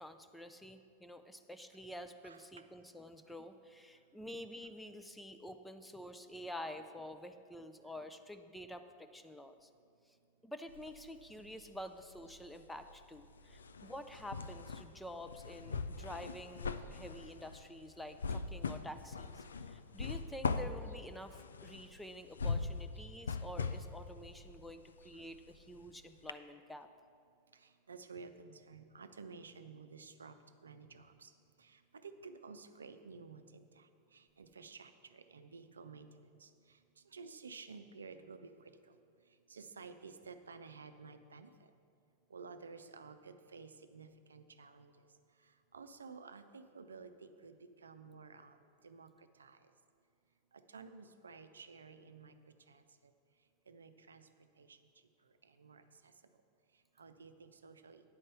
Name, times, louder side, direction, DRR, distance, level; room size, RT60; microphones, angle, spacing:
voice 1, 0.0-9.7 10.4-26.9, left 1 dB, 5° left, 8 dB, 0.5 m, -49 dB
sound 1, 10.7-11.8 12.1-25.9 26.3-26.4, left 4 dB, 70° left, 0.4 m, -41 dB
voice 2, 27.9-30.3 30.6-31.3 31.6-33.9 34.1-36.1 36.4-36.5 37.1-38.5 39.5-41.5 42.3-44.9 45.7-47.6 47.8-48.6 48.8-49.1 49.4-49.6 50.7-52.3 52.7-52.8 53.7-54.2 54.6-54.8 55.6-55.8 57.0-58.0, right 4 dB, 70° right, 9 dB, 0.5 m, -52 dB
9.6 x 5.4 x 7.7 m, 2.4 s
figure-of-eight pair, 90°, 0 cm